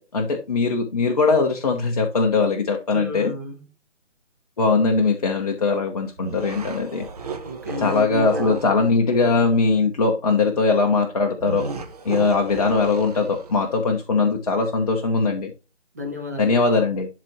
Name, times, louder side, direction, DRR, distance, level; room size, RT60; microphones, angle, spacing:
voice 1, 0.1-3.3 4.6-7.0 7.8-11.6 12.0-15.5 16.4-17.1, left 4 dB, 30° left, 1.1 m, -20 dB
voice 2, 2.9-3.7 7.4-8.6 15.9-16.7, left 3 dB, 15° right, 0.7 m, -32 dB
sound 1, 6.2-8.8 11.4-13.7, right 4 dB, 30° right, 1.0 m, -33 dB
11.5 x 4.1 x 3.1 m
figure-of-eight pair, 155°, 37 cm